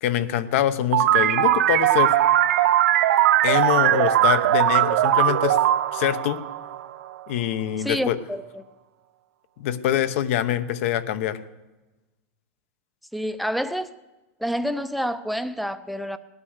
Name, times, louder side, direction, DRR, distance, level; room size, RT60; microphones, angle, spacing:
voice 1, 0.0-2.1 3.4-5.6 5.9-6.4 7.3-8.2 9.6-11.4, left 11 dB, 60° left, 1.0 m, -24 dB
sound 1, 0.9-7.2, right 12 dB, 75° right, 1.0 m, -20 dB
voice 2, 7.8-8.6 13.1-13.9 14.4-16.2, equal, ahead, 0.5 m, -28 dB
18.0 x 9.6 x 8.1 m
supercardioid pair, 160°, 8 cm